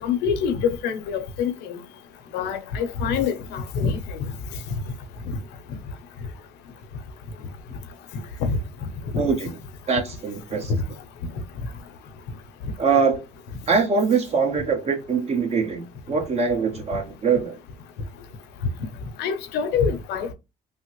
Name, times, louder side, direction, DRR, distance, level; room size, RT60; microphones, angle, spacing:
voice 1, 0.0-1.8 2.3-4.3 8.4-8.6 19.2-20.3, left 6 dB, 90° left, 0.7 m, -25 dB
voice 2, 9.1-9.5 9.9-10.7 12.8-13.2 13.7-17.6, right 5 dB, 40° right, 1.1 m, -23 dB
3.4 x 2.1 x 3.0 m
cardioid pair, 110°, 17 cm